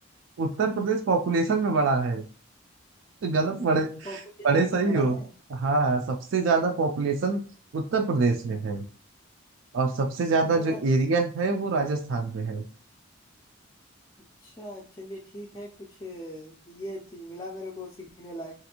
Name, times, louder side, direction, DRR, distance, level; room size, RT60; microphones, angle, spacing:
voice 1, 0.4-2.2 3.2-4.2 4.4-5.2 5.5-7.4 7.7-8.8 9.7-12.6, right 3 dB, 70° right, 4 dB, 0.4 m, -25 dB
voice 2, 4.5-5.3 10.5-10.8 14.4-18.5, equal, 20° left, -4 dB, 0.4 m, -40 dB
3.1 x 2.5 x 2.8 m, 0.40 s
head